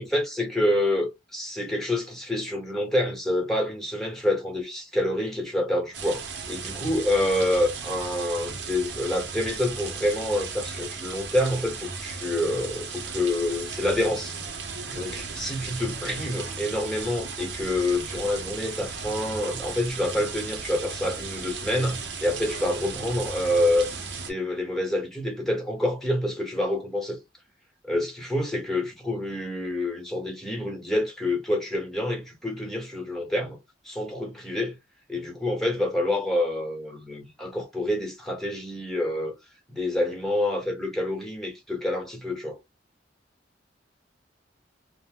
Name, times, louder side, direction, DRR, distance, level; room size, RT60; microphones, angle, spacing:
voice 1, 0.0-14.4 14.9-23.9 24.3-27.2 27.8-33.6 33.8-34.8 35.1-39.3 39.7-42.6, left 1 dB, ahead, 1.0 m, -27 dB
sound 1, 5.9-24.3, right 5 dB, 70° right, 0.7 m, -36 dB
2.7 x 2.1 x 3.6 m
head